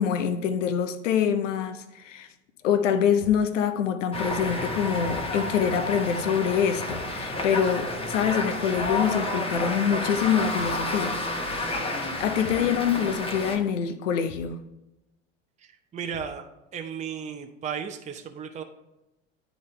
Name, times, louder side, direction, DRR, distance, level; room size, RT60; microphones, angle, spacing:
voice 1, 0.0-2.3 2.6-11.2 11.5-11.8 12.2-14.6, left 8 dB, 80° left, 10 dB, 0.7 m, -25 dB
Thump thud, 3.2-3.5 5.0-5.4 6.9-7.2 8.7-9.1 10.6-10.9 12.4-12.8 14.3-14.6 16.1-16.5, left 4 dB, 40° left, 0.9 m, -44 dB
sound 1, 4.1-13.6, left 2 dB, 15° left, 1.0 m, -30 dB
voice 2, 15.6-16.5 16.7-18.6, right 7 dB, 20° right, 5 dB, 0.6 m, -35 dB
10.0 x 4.0 x 3.2 m, 0.95 s
hypercardioid pair, 75°, 37 cm